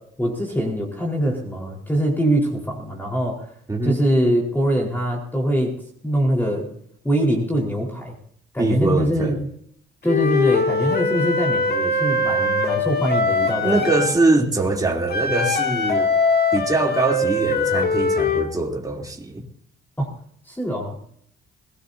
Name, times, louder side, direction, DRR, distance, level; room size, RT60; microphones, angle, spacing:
voice 1, 0.2-3.5 3.8-5.8 6.0-6.7 7.0-8.1 8.5-9.5 10.0-13.8 20.0-20.1 20.5-20.9, right 1 dB, 10° left, -1 dB, 4.6 m, -23 dB
voice 2, 3.7-4.0 8.6-9.4 13.6-16.1 16.5-19.5, right 2 dB, 20° right, 0 dB, 3.4 m, -22 dB
Wind instrument woodwind instrument, 10.1-14.1 15.1-18.5, left 3 dB, 55° left, 2.7 m, -22 dB
22.0 x 18.0 x 2.8 m, 0.66 s
cardioid pair, 90°, 20 cm